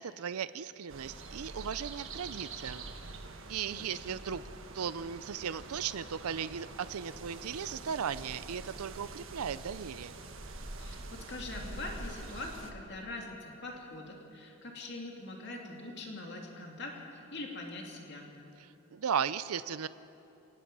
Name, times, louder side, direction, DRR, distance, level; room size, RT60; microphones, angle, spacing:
voice 1, 0.0-2.8 3.5-4.4 4.7-10.2 18.9-19.9, right 7 dB, 85° right, 15 dB, 0.5 m, -36 dB
sound 1, 0.9-12.7, right 3 dB, 65° right, 1.5 m, -45 dB
voice 2, 3.7-4.1 10.8-18.3, left 2 dB, 50° left, 0 dB, 2.6 m, -43 dB
27.5 x 18.5 x 5.5 m, 2.7 s
head